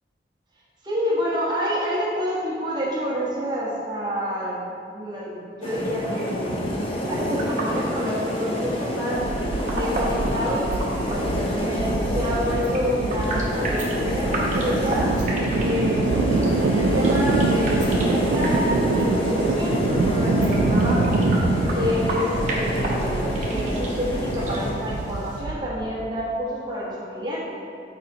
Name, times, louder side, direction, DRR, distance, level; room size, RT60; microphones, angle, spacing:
voice 1, 0.8-4.6 4.9-6.7 7.0-9.3 9.7-15.1 15.6-21.2 21.7-27.4, equal, 25° right, -7 dB, 1.2 m, -28 dB
sound 1, 5.6-24.7, equal, 30° left, 0.6 m, -27 dB
sound 2, 7.3-25.4, right 1 dB, 40° right, 0.9 m, -35 dB
sound 3, 9.1-26.2, right 3 dB, 85° right, 0.3 m, -25 dB
6.5 x 5.0 x 2.9 m, 2.5 s
head